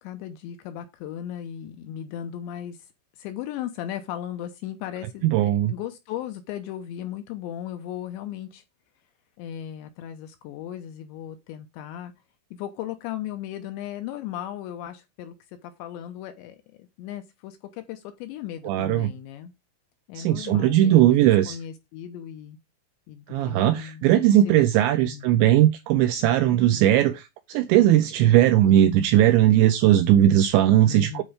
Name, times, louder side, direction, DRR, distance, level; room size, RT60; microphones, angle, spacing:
voice 1, 0.0-2.9 3.2-8.6 9.4-12.1 12.5-15.4 15.6-19.5 20.1-21.2 21.5-22.6 23.1-25.3 30.9-31.2, left 11 dB, 80° left, 2.7 m, -36 dB
voice 2, 5.2-5.7 18.6-19.1 20.2-21.6 23.3-31.2, right 12 dB, 85° right, 2.6 m, -19 dB
9.7 x 4.4 x 5.0 m
omnidirectional pair, 5.8 m